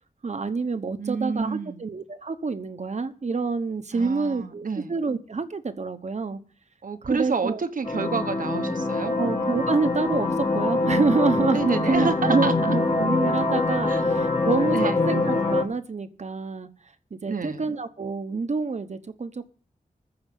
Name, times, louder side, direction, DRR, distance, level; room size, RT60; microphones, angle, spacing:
voice 1, 0.2-6.4 7.0-7.6 9.2-16.7 17.1-19.5, right 4 dB, 55° right, 10 dB, 1.1 m, -27 dB
voice 2, 1.0-1.9 3.9-5.0 6.8-9.2 11.5-12.5 13.9-14.0 14.7-15.0 17.2-17.7, right 5 dB, 75° right, 9 dB, 1.2 m, -29 dB
sound 1, 7.8-15.6, left 2 dB, 40° left, 2.0 m, -24 dB
14.5 x 5.0 x 9.2 m, 0.43 s
wide cardioid pair, 100°, 14 cm